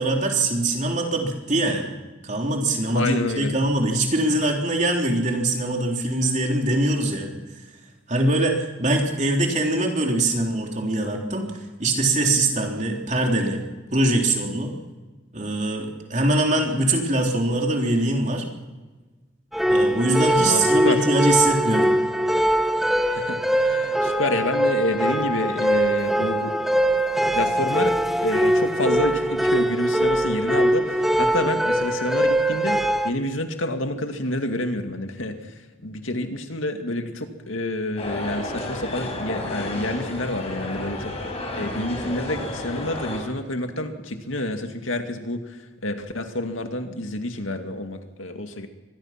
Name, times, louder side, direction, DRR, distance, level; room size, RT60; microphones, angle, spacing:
voice 1, 0.0-1.9 2.2-7.3 8.1-11.5 11.8-13.6 13.9-14.7 15.3-18.4 19.7-21.9, right 2 dB, 35° right, 1 dB, 3.6 m, -22 dB
voice 2, 2.9-3.5 20.4-21.0 23.1-26.5 27.3-27.9 28.2-32.8 33.0-35.4 35.8-41.1 41.6-45.4 45.8-48.7, left 1 dB, 80° left, 6 dB, 2.3 m, -28 dB
sound 1, 19.5-33.1, right 1 dB, ahead, 1.1 m, -22 dB
sound 2, 38.0-43.2, left 1 dB, 30° left, 5.4 m, -31 dB
24.5 x 20.0 x 6.0 m, 1.2 s
head